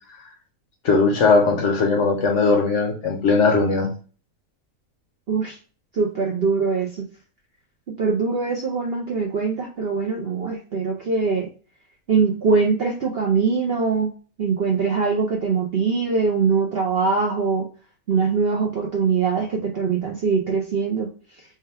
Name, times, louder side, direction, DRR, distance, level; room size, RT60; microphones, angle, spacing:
voice 1, 0.8-3.9, left 4 dB, 60° left, 3 dB, 0.9 m, -19 dB
voice 2, 5.9-7.0 8.0-11.5 12.1-14.1 14.4-17.6 18.1-21.1, right 5 dB, 55° right, 0 dB, 0.7 m, -22 dB
3.4 x 2.3 x 4.3 m, 0.39 s
omnidirectional pair, 1.6 m